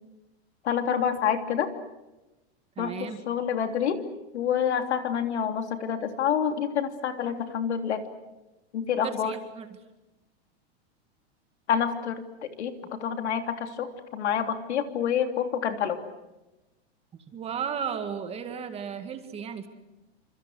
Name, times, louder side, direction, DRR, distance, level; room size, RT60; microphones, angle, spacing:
voice 1, 0.6-1.7 2.8-4.0 4.3-8.0 8.7-9.3 11.7-16.0, left 8 dB, 85° left, 6 dB, 3.2 m, -28 dB
voice 2, 2.8-3.2 9.0-9.7 13.1-13.2 17.1-19.7, right 7 dB, 20° right, 8 dB, 2.0 m, -35 dB
29.5 x 26.5 x 6.4 m, 1.0 s
supercardioid pair, 155°, 33 cm